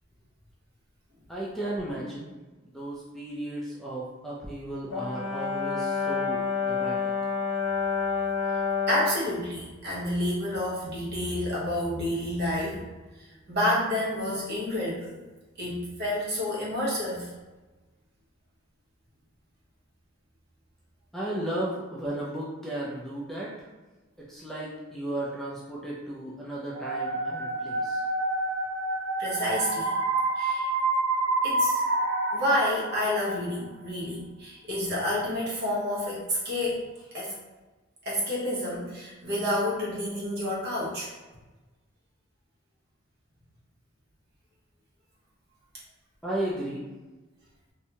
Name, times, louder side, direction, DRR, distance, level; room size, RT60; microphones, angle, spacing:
voice 1, 1.3-2.3 2.6-7.1 21.1-23.7 24.2-28.0 46.2-46.9, right 1 dB, ahead, -6 dB, 0.3 m, -35 dB
Brass instrument, 4.9-9.3, left 5 dB, 90° left, 0.6 m, -28 dB
voice 2, 8.9-12.9 13.2-15.2 15.6-17.3 29.2-29.9 30.3-30.7 31.4-31.8 32.3-36.8 37.1-37.3 38.0-41.1, left 1 dB, 50° right, -6 dB, 0.9 m, -29 dB
sound 1, 26.7-33.5, right 2 dB, 75° right, 0.4 m, -28 dB
2.6 x 2.2 x 2.8 m, 1.2 s
head